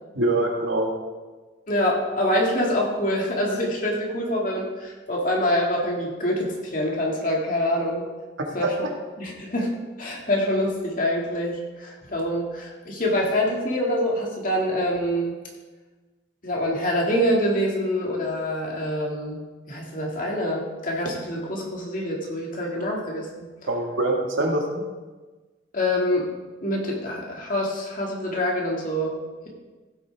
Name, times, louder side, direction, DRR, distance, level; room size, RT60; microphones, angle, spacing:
voice 1, 0.2-0.9 8.6-8.7 23.7-24.8, right 2 dB, 75° right, 1 dB, 1.8 m, -24 dB
voice 2, 1.7-8.1 8.5-8.8 9.2-15.4 16.4-19.4 19.7-23.5 25.7-26.3 26.6-29.1, left 1 dB, 40° left, -2 dB, 2.2 m, -25 dB
15.0 x 8.5 x 3.5 m, 1.3 s
head